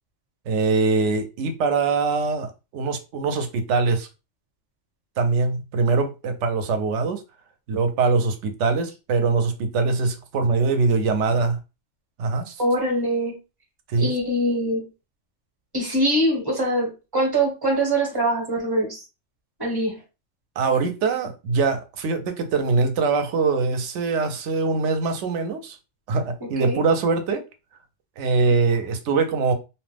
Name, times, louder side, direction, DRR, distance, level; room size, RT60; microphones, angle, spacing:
voice 1, 0.5-4.1 5.2-7.2 7.7-11.6 12.2-12.6 13.9-14.1 20.6-25.8 26.1-27.4 28.2-29.5, right 4 dB, 75° right, 0.9 m, -23 dB
voice 2, 12.6-13.3 14.0-14.8 15.7-19.0 19.6-20.0 26.6-26.8, right 1 dB, 20° right, 0.9 m, -23 dB
2.8 x 2.0 x 3.3 m
omnidirectional pair, 1.3 m